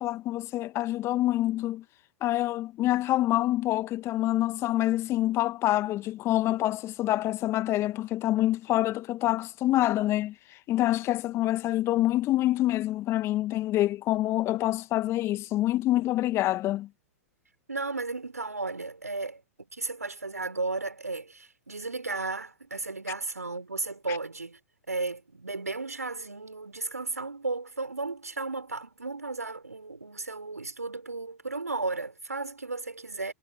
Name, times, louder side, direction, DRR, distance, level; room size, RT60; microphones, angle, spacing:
voice 1, 0.0-1.8 2.2-10.3 10.7-16.9 24.1-24.2, left 15 dB, 35° left, 1.5 m, -26 dB
voice 2, 17.7-19.4 19.7-24.6 24.9-33.3, right 3 dB, 85° right, 6.6 m, -34 dB
figure-of-eight pair, 100°, 8 cm